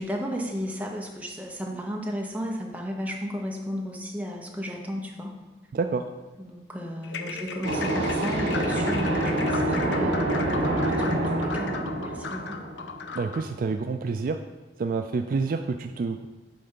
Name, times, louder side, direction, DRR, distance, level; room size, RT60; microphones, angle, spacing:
voice 1, 0.0-5.3 6.4-12.6, equal, 10° right, 0 dB, 0.8 m, -34 dB
voice 2, 5.7-6.0 13.1-14.4 14.8-16.3, right 4 dB, 50° right, 7 dB, 0.3 m, -28 dB
sound 1, 7.0-13.5, left 5 dB, 75° left, 0.5 m, -37 dB
sound 2, 7.6-13.3, right 1 dB, 85° right, 1.4 m, -26 dB
8.6 x 3.4 x 5.7 m, 1.2 s
head